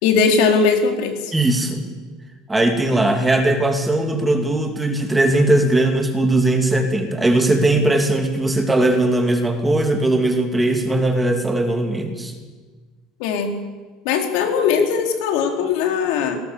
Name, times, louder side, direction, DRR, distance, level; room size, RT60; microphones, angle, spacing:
voice 1, 0.0-1.3 13.2-13.6 14.0-16.4, left 5 dB, 75° left, 4 dB, 4.0 m, -19 dB
voice 2, 1.3-1.9 2.5-12.3, right 2 dB, 10° right, 4 dB, 2.7 m, -19 dB
27.5 x 19.0 x 7.1 m, 1.4 s
cardioid pair, 150°, 0 cm